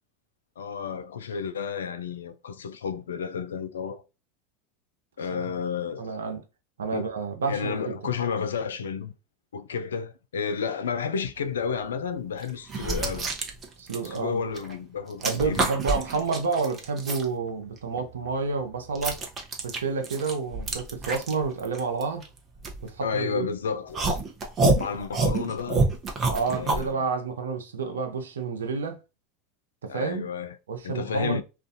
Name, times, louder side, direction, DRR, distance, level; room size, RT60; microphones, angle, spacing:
voice 1, 0.6-4.0 5.2-6.2 6.9-7.1 7.5-9.1 9.5-13.3 14.0-15.7 23.0-24.1 24.7-25.9 26.5-27.1 29.9-30.6 30.8-31.4, left 6 dB, 80° left, 0.3 m, -31 dB
voice 2, 6.0-6.4 6.8-8.0 13.8-14.4 15.2-19.2 19.6-22.2 22.8-23.5 26.3-29.0 29.8-30.3 30.7-31.4, right 4 dB, 80° right, 0.6 m, -29 dB
sound 1, 11.6-11.8 12.4-14.7 15.0-17.3 17.8-23.4 23.9-26.9, right 3 dB, 30° right, 0.7 m, -28 dB
2.4 x 2.2 x 2.6 m
hypercardioid pair, 85°, 0 cm